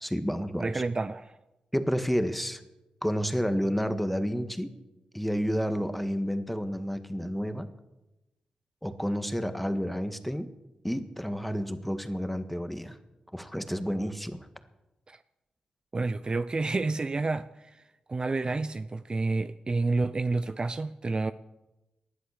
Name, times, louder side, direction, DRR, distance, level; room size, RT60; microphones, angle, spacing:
voice 1, 0.0-0.8 1.7-2.6 3.0-4.7 5.1-7.7 8.8-10.5 10.8-13.0 13.3-14.5, equal, 5° left, 1.6 m, -30 dB
voice 2, 0.6-1.4 15.1-15.2 15.9-17.8 18.1-21.3, right 3 dB, 35° right, 0.6 m, -29 dB
19.5 x 11.5 x 6.6 m
cardioid pair, 55°, 3 cm